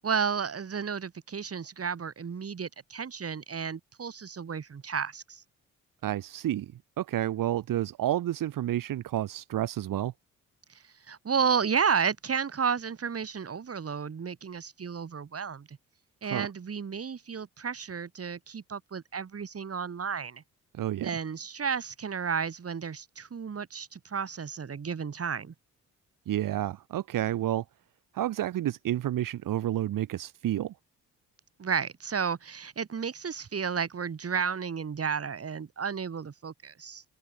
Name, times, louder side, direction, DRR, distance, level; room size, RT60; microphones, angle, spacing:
voice 1, 0.0-5.4 11.1-15.8 16.2-20.4 21.0-25.5 31.6-37.0, right 6 dB, 40° right, 2.8 m, -32 dB
voice 2, 6.0-6.7 7.0-10.1 16.3-16.5 20.7-21.1 26.3-27.6 28.1-30.7, right 12 dB, 60° right, 1.8 m, -30 dB
open air
hypercardioid pair, 45°, 36 cm